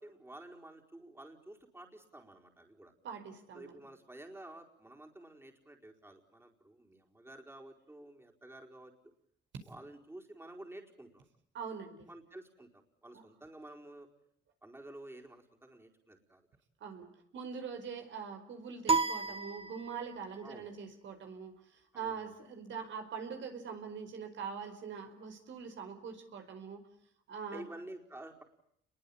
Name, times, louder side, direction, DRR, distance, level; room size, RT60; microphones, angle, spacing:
voice 1, 0.0-2.9 3.5-8.9 9.7-11.3 12.1-14.1 14.6-16.5 20.4-20.7 21.9-22.3 27.5-28.4, right 1 dB, 10° right, 2 dB, 4.6 m, -51 dB
voice 2, 3.0-3.8 11.5-12.1 13.1-13.3 16.8-26.8 27.3-27.6, right 6 dB, 70° right, 6 dB, 4.9 m, -43 dB
sound 1, 18.9-20.3, right 4 dB, 30° right, 1.6 m, -32 dB
29.5 x 22.5 x 8.7 m, 0.72 s
cardioid pair, 90°, 20 cm